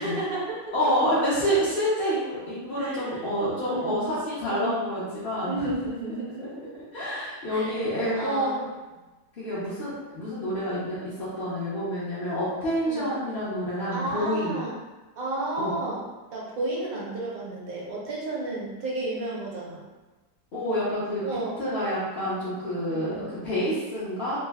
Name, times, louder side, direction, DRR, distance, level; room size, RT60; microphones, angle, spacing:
voice 1, 0.0-0.6 2.8-3.2 3.6-4.0 4.5-4.8 5.3-6.5 7.5-7.7 8.1-8.6 12.8-13.1 13.9-14.8 15.1-16.0 16.3-19.8 21.2-21.6 22.9-23.3, right 2 dB, 60° right, -5 dB, 1.2 m, -32 dB
voice 2, 0.7-5.7 6.9-8.7 9.4-14.6 15.6-15.7 20.5-21.2 21.6-24.4, equal, 45° left, -11 dB, 0.7 m, -28 dB
3.2 x 2.1 x 3.4 m, 1.2 s
omnidirectional pair, 1.9 m